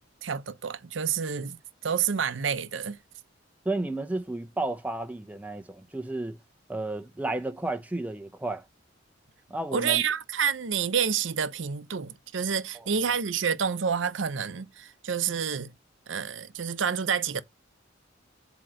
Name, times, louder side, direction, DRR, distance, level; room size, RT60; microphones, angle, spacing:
voice 1, 0.2-3.0 9.7-15.7 16.1-17.4, right 7 dB, 70° right, 0.7 m, -29 dB
voice 2, 3.6-6.4 6.7-8.6 9.5-10.0, right 2 dB, 10° right, 0.6 m, -32 dB
7.7 x 2.9 x 5.0 m
head